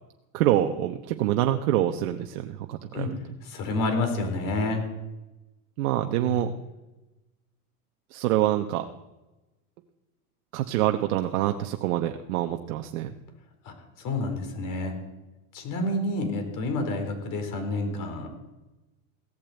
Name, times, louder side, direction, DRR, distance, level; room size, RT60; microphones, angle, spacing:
voice 1, 0.3-3.2 5.8-6.5 8.1-8.9 10.5-13.1, right 13 dB, 70° right, 6 dB, 1.1 m, -26 dB
voice 2, 3.4-4.8 6.2-6.4 13.6-14.9 15.5-18.3, left 2 dB, 45° left, 5 dB, 4.4 m, -29 dB
16.5 x 8.8 x 8.0 m, 1.1 s
supercardioid pair, 115°, 44 cm